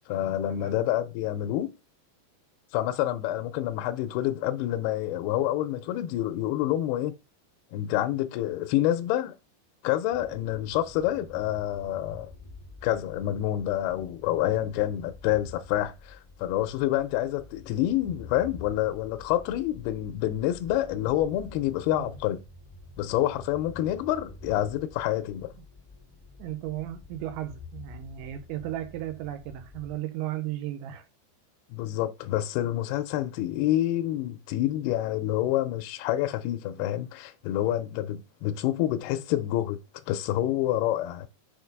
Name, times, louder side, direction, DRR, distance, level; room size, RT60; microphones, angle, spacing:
voice 1, 0.1-1.7 2.7-7.1 7.7-9.4 9.8-12.3 12.8-22.4 23.0-25.5 31.7-39.8 40.1-41.3, left 13 dB, 80° left, 2.4 m, -28 dB
sound 1, 10.1-30.0, left 3 dB, 10° right, 0.9 m, -48 dB
voice 2, 26.4-31.1, right 13 dB, 90° right, 3.1 m, -35 dB
6.3 x 4.7 x 5.2 m
omnidirectional pair, 5.2 m